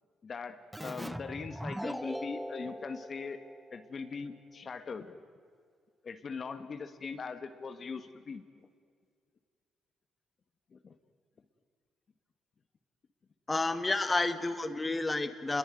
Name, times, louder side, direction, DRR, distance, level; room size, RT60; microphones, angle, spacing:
voice 1, 0.2-3.4 3.7-5.2 6.0-8.4 10.7-10.9, left 5 dB, 45° left, 9 dB, 1.6 m, -41 dB
Keyboard (musical), 0.7-4.1, equal, 5° right, 0.7 m, -41 dB
voice 2, 13.5-15.6, left 2 dB, 20° left, 10 dB, 1.7 m, -30 dB
29.0 x 22.0 x 9.1 m, 2.1 s
cardioid pair, 90°, 0 cm